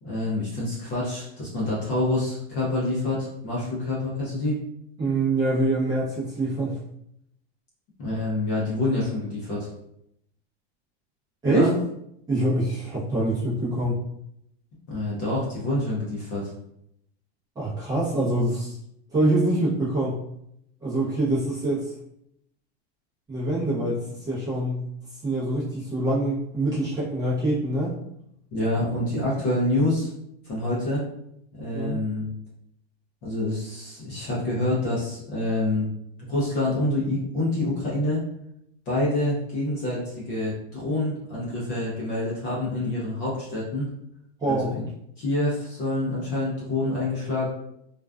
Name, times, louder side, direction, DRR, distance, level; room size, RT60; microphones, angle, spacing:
voice 1, 0.0-4.6 8.0-9.7 11.4-11.7 14.9-16.5 28.5-30.1 30.4-31.0 31.6-32.3 33.2-35.9 36.2-38.2 38.9-43.9 44.5-44.8 45.2-47.5, left 2 dB, 30° left, -6 dB, 0.6 m, -27 dB
voice 2, 5.0-6.8 11.4-11.7 12.3-14.0 17.6-18.8 19.1-20.2 20.8-21.9 23.3-24.8 25.2-28.0 31.7-32.0 44.4-44.8, right 1 dB, 10° right, -10 dB, 0.7 m, -25 dB
2.4 x 2.2 x 2.3 m, 0.76 s
supercardioid pair, 165°, 32 cm